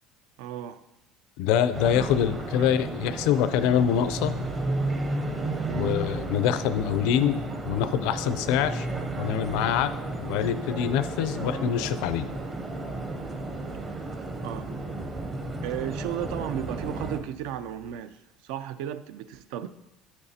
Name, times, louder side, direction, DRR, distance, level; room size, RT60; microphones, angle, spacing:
voice 1, 0.4-0.8 2.6-2.7 5.7-6.0 14.4-14.7 15.6-18.2 18.4-19.7, right 10 dB, 80° right, 13 dB, 0.4 m, -34 dB
voice 2, 1.4-4.4 5.7-7.4 7.7-8.9 9.2-9.9 10.2-12.3, left 10 dB, 70° left, 13 dB, 0.4 m, -25 dB
sound 1, 1.7-17.2, right 2 dB, 20° right, 0.6 m, -33 dB
sound 2, 2.1-17.9, right 6 dB, 50° right, 2.7 m, -52 dB
8.9 x 8.6 x 2.8 m, 0.89 s
cardioid pair, 170°, 0 cm